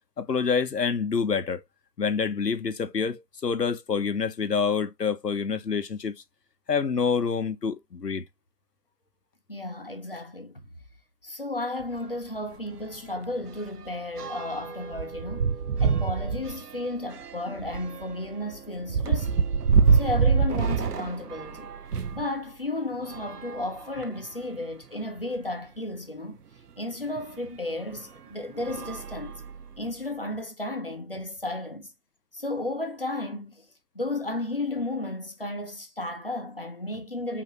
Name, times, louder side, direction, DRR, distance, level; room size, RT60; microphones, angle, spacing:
voice 1, 0.2-1.6 2.0-6.1 6.7-8.2, left 5 dB, 75° left, 1.1 m, -27 dB
voice 2, 9.5-10.6 11.2-15.5 15.8-19.5 19.9-21.7 22.1-26.4 26.8-29.4 29.8-31.9 32.3-33.7 33.9-37.4, left 2 dB, 35° left, 0.8 m, -33 dB
sound 1, 11.8-12.0 12.3-12.5 12.8-22.3 23.0-24.3 25.0-25.1 25.4-25.5 27.2-27.3 27.9-28.2 28.6-29.8, right 5 dB, 70° right, 0.7 m, -27 dB
5.7 x 2.9 x 3.0 m
figure-of-eight pair, 175°, 49 cm